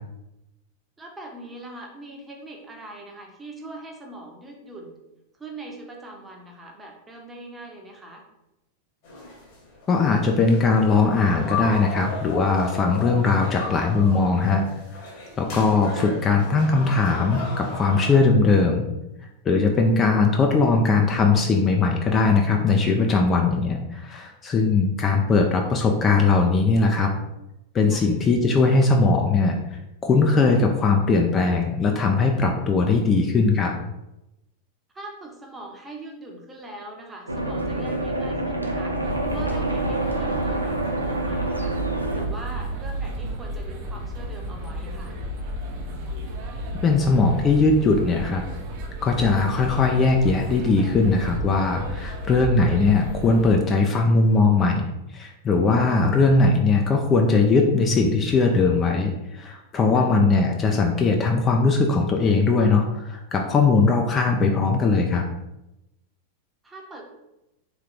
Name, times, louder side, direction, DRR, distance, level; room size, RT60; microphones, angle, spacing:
voice 1, 1.0-5.0 5.4-8.2 12.9-13.0 27.9-28.1 34.9-41.8 42.1-45.2 59.9-60.1 66.6-67.0, right 2 dB, 15° right, 1 dB, 0.8 m, -41 dB
sound 1, 9.0-18.3, left 3 dB, 50° left, 1.4 m, -35 dB
voice 2, 9.9-14.6 15.4-18.9 19.4-27.1 27.7-33.7 46.8-48.4 49.0-65.2, left 3 dB, 25° left, 2 dB, 0.4 m, -20 dB
sound 2, 37.3-42.3, right 1 dB, 85° right, 0.5 m, -27 dB
sound 3, 39.0-53.5, right 1 dB, 45° right, 0.7 m, -32 dB
3.7 x 3.1 x 3.4 m, 0.93 s
figure-of-eight pair, 90°, 0 cm